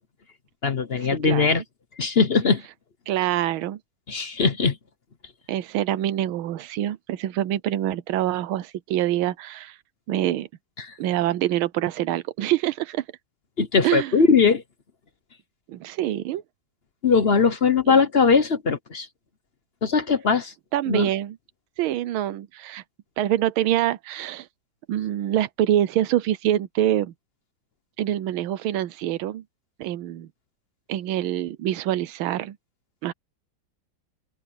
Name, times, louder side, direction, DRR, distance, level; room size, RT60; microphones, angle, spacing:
voice 1, 0.6-1.6 2.0-2.6 4.1-4.8 10.8-10.9 13.6-14.6 17.0-19.1 19.8-20.5 20.9-21.1, left 5 dB, 45° left, 0.9 m, -20 dB
voice 2, 1.2-1.6 3.1-3.8 5.5-9.8 10.1-10.5 11.0-13.0 13.8-14.1 15.7-16.4 17.9-18.0 20.7-21.4 21.8-22.8 23.2-24.5 24.9-27.1 28.0-29.4 29.8-30.3 30.9-32.6 33.0-33.1, right 12 dB, 90° right, 1.6 m, -25 dB
open air
omnidirectional pair, 2.2 m